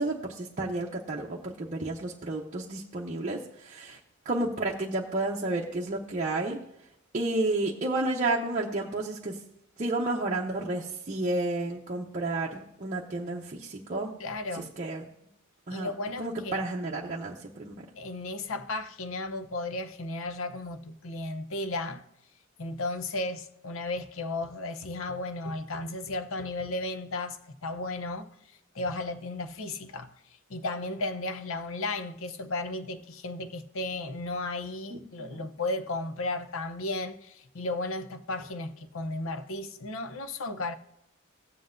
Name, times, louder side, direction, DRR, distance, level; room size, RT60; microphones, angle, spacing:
voice 1, 0.0-4.0 4.2-6.6 7.1-9.4 9.8-14.1 14.8-15.1 15.7-15.9 16.2-17.7 34.9-35.4, right 2 dB, 35° right, 0.8 m, -31 dB
voice 2, 14.2-14.7 15.7-16.6 18.0-22.0 22.6-28.3 28.7-30.1 30.5-40.7, left 2 dB, 75° left, 0.7 m, -34 dB
16.5 x 7.6 x 2.6 m
head